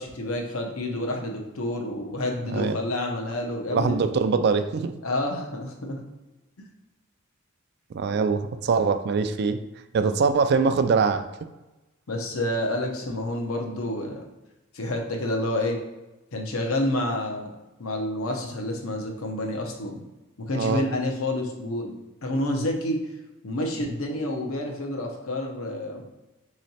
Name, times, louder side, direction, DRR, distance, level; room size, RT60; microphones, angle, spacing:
voice 1, 0.0-4.0 5.0-6.0 12.1-14.2 14.7-15.8 16.3-17.5 17.8-20.0 20.5-21.9 22.2-23.0 23.4-26.0, left 1 dB, 80° left, 2 dB, 0.8 m, -29 dB
voice 2, 2.5-2.8 3.7-4.9 7.9-9.6 9.9-11.2 20.5-20.8, right 5 dB, 50° right, 10 dB, 0.3 m, -23 dB
3.8 x 3.1 x 4.2 m, 1.0 s
head